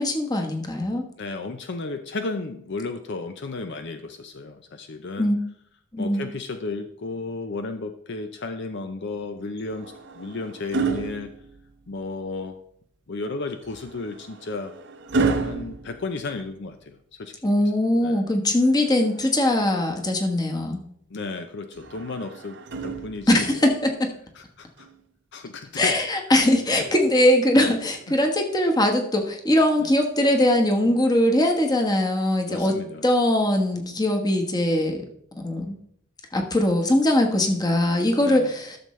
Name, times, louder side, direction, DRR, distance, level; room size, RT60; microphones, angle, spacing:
voice 1, 0.0-1.0 5.2-5.4 5.9-6.3 17.4-20.8 23.3-24.1 25.7-32.7 33.0-35.0 35.4-35.8 36.3-38.8, left 1 dB, 20° left, 3 dB, 1.2 m, -21 dB
voice 2, 1.2-5.3 6.0-11.3 11.9-12.6 13.1-14.7 15.4-17.5 18.0-18.2 21.1-23.7 24.3-24.9 25.3-26.0 27.5-27.8 28.1-28.2 29.8-29.9 30.8-31.0 32.5-33.0 33.7-34.0 37.3-37.6 38.2-38.6, left 3 dB, 60° left, 7 dB, 0.6 m, -34 dB
sound 1, 9.6-12.0 13.6-16.8 18.6-19.7 21.7-23.6 24.8-25.0, right 4 dB, 60° right, 0.7 m, -31 dB
12.5 x 6.8 x 3.2 m, 0.69 s
head